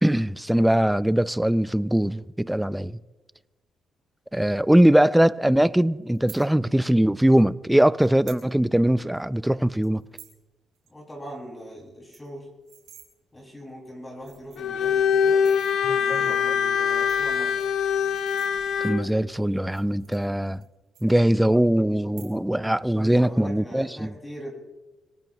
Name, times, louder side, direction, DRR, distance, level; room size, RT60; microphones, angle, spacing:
voice 1, 0.0-3.0 4.3-10.0 16.1-16.4 18.8-20.6 21.0-24.1, right 1 dB, 5° right, 0.5 m, -21 dB
sound 1, 6.1-6.4 7.4-7.5 8.0-8.4 8.8-8.9 9.1-9.4 9.8-10.4 10.7-10.9 11.2-11.3 11.6-11.7 11.9-13.1 13.8-13.9 14.2-14.8 15.3-15.8 16.7-18.9 19.6-20.7 20.9-21.6 22.0-22.6 22.9-23.3, right 10 dB, 85° right, 3.9 m, -49 dB
voice 2, 10.9-12.5 13.3-15.5 15.8-17.6 23.1-24.5, equal, 20° left, 5.9 m, -41 dB
Bowed string instrument, 14.6-19.1, left 7 dB, 70° left, 0.9 m, -23 dB
25.5 x 18.0 x 3.1 m
cardioid pair, 90°, 0 cm